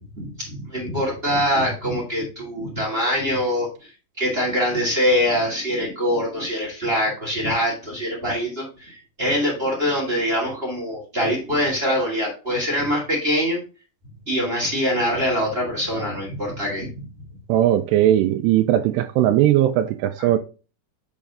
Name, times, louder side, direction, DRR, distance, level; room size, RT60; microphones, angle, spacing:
voice 1, 0.1-3.7 4.2-13.6 14.3-17.0 20.2-20.4, equal, 20° right, 1.6 m, -24 dB
voice 2, 17.5-20.4, right 12 dB, 85° right, 2.5 m, -18 dB
7.1 x 5.0 x 3.6 m
omnidirectional pair, 5.2 m